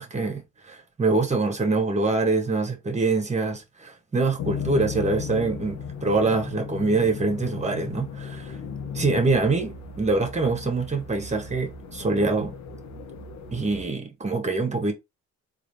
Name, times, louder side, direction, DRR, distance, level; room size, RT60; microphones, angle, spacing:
voice 1, 0.0-8.6 8.9-12.5 13.5-14.9, right 3 dB, 25° right, 1.2 m, -25 dB
sound 1, 4.4-13.8, left 6 dB, 65° left, 0.9 m, -36 dB
4.0 x 2.6 x 3.1 m
cardioid pair, 90°, 30 cm